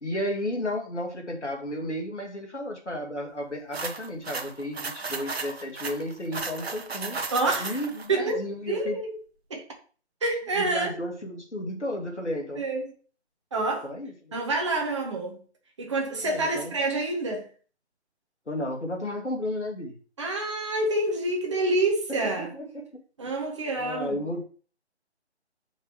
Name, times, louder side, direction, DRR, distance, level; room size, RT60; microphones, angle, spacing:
voice 1, 0.0-7.2 7.6-9.0 10.6-12.6 13.8-14.4 16.2-16.8 18.5-20.0 22.1-22.9 23.8-24.4, left 1 dB, 90° left, 2.0 m, -33 dB
sound 1, 3.7-8.1, right 4 dB, 65° right, 1.1 m, -34 dB
voice 2, 7.3-7.8 8.1-9.2 9.5-9.6 10.2-10.9 12.6-12.9 13.5-13.9 14.3-15.4 15.8-17.5 20.2-22.5 23.2-24.2, right 2 dB, 25° right, 1.3 m, -27 dB
6.6 x 5.2 x 3.1 m
figure-of-eight pair, 160°, 34 cm